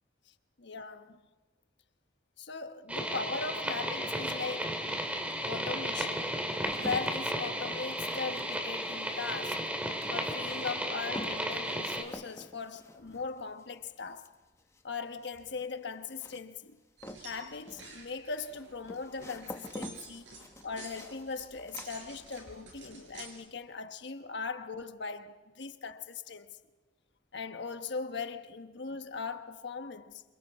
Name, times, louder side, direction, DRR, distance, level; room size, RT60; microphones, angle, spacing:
voice 1, 0.6-1.2 2.4-4.9 5.4-6.4 6.8-9.7 10.1-14.3 14.8-16.8 17.2-20.2 20.6-26.6 27.3-30.2, left 4 dB, 65° left, 1.2 m, -39 dB
sound 1, 2.9-12.0, equal, 10° right, 2.3 m, -34 dB
sound 2, 4.7-4.8 5.5-22.6 22.9-23.5, left 1 dB, 15° left, 1.2 m, -49 dB
sound 3, 17.0-23.3, right 3 dB, 75° right, 6.6 m, -50 dB
28.0 x 27.5 x 4.3 m
head